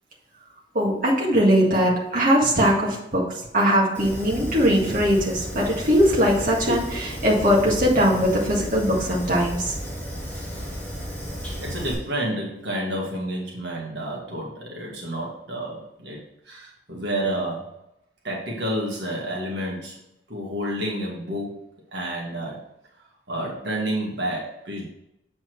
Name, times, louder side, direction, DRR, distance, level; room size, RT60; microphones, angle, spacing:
voice 1, 0.7-9.7, equal, 50° right, -4 dB, 1.9 m, -20 dB
Fire, 3.9-11.9, equal, 10° left, 2.7 m, -34 dB
voice 2, 11.6-17.7 18.2-20.0 20.3-21.6 21.9-22.6 23.3-24.8, right 1 dB, 75° right, -3 dB, 1.8 m, -30 dB
7.8 x 4.3 x 4.6 m, 0.85 s
head